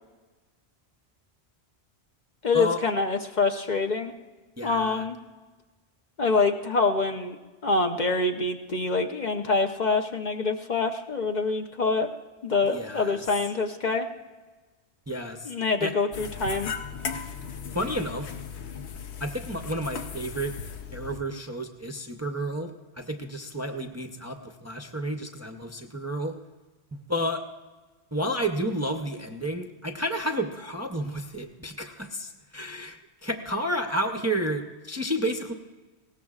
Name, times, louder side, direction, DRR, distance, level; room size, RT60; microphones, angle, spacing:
voice 1, 2.4-4.1 4.6-5.2 6.2-7.4 7.6-12.1 12.4-14.1 15.4-16.7, left 3 dB, 50° left, 4 dB, 0.8 m, -25 dB
voice 2, 4.6-5.0 12.7-13.2 15.1-15.5 15.8-15.9 17.7-18.3 19.2-20.5 20.9-26.3 26.9-27.4 28.1-35.5, equal, 20° right, 4 dB, 0.6 m, -31 dB
sound 1, 16.1-21.2, left 6 dB, 85° left, 1.1 m, -37 dB
20.0 x 17.5 x 2.4 m, 1.3 s
omnidirectional pair, 1.1 m